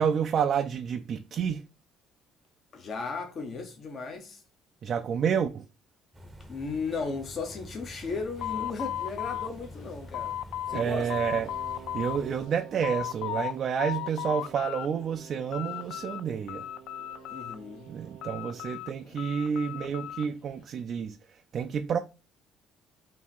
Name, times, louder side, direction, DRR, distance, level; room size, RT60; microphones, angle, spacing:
voice 1, 0.0-1.6 4.8-5.7 10.7-16.7 17.9-22.0, right 7 dB, 50° right, 0.4 m, -29 dB
voice 2, 2.7-4.4 6.5-10.4 10.7-11.1 17.3-17.9, left 4 dB, 45° left, 1.0 m, -35 dB
sound 1, 6.1-12.5, left 1 dB, 15° right, 0.8 m, -47 dB
sound 2, 8.4-10.8 11.1-12.2 12.6-13.5 13.8-14.9 15.2-16.2 16.5-17.7 18.2-20.3, left 12 dB, 75° left, 0.3 m, -36 dB
Wind instrument woodwind instrument, 10.7-18.7, right 10 dB, 70° right, 0.9 m, -49 dB
3.5 x 2.8 x 4.3 m
cardioid pair, 100°, 0 cm